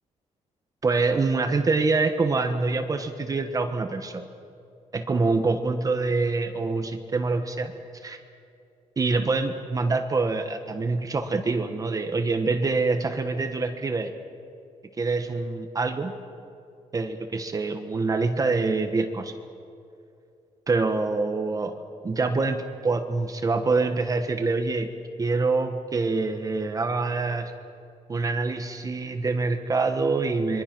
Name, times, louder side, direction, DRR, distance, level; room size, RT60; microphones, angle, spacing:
voice 1, 0.8-4.3 4.9-7.7 8.0-8.2 9.0-14.1 15.0-16.1 16.9-19.3 20.7-21.7 22.0-24.9 25.2-27.5 28.1-30.6, right 3 dB, 30° right, 7 dB, 1.3 m, -25 dB
26.5 x 23.0 x 6.1 m, 2.5 s
cardioid pair, 145°, 12 cm